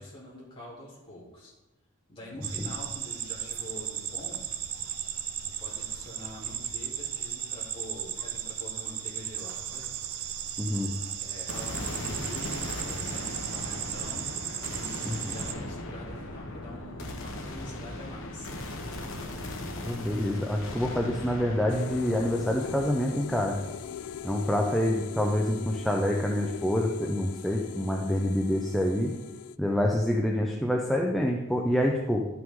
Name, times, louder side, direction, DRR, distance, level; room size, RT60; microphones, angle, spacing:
voice 1, 0.0-1.5 2.1-4.4 5.4-9.8 11.2-14.3 14.6-18.5, left 1 dB, 25° left, -6 dB, 2.9 m, -45 dB
sound 1, 2.4-15.5, right 10 dB, 80° right, 0.6 m, -36 dB
voice 2, 10.6-11.0 15.1-15.2 19.8-23.6 24.2-29.1 29.6-32.3, left 1 dB, ahead, 0 dB, 0.5 m, -27 dB
sound 2, 11.5-25.8, left 1 dB, 65° left, 1.1 m, -39 dB
sound 3, 21.7-29.6, left 8 dB, 85° left, 0.3 m, -40 dB
11.0 x 5.9 x 3.7 m, 1.0 s
head